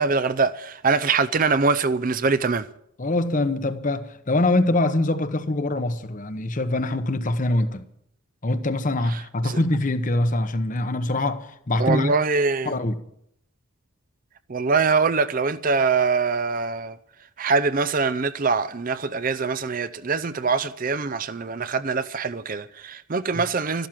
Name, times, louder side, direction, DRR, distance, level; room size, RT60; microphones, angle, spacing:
voice 1, 0.0-2.6 9.4-9.6 11.8-12.7 14.5-17.0 17.4-23.9, right 4 dB, 40° right, 0.5 m, -23 dB
voice 2, 3.0-7.9 8.4-12.1 12.6-13.0 23.3-23.4, left 2 dB, 35° left, 0.9 m, -24 dB
13.0 x 12.0 x 7.4 m
head